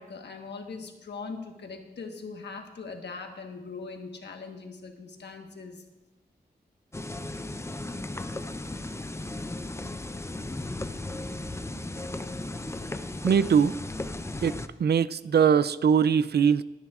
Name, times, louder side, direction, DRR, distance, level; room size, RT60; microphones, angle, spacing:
voice 1, 0.0-5.8, left 4 dB, 85° left, 4 dB, 1.3 m, -41 dB
sound 1, 6.9-14.7, left 2 dB, 15° left, 0.6 m, -36 dB
voice 2, 13.2-13.7 14.4-14.5 14.8-16.6, right 7 dB, 70° right, 16 dB, 0.4 m, -21 dB
21.5 x 9.4 x 2.4 m, 1.1 s
cardioid pair, 60°, 17 cm